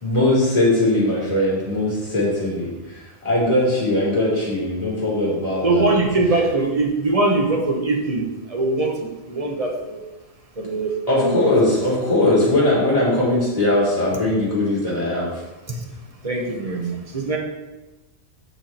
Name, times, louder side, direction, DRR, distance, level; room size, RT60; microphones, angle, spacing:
voice 1, 0.0-5.9 11.1-15.3, left 1 dB, 30° left, -7 dB, 3.4 m, -20 dB
voice 2, 5.6-10.0 10.6-11.3 15.7-15.8 16.2-17.4, right 2 dB, 30° right, 0 dB, 1.2 m, -22 dB
8.3 x 5.9 x 4.4 m, 1.1 s
omnidirectional pair, 1.3 m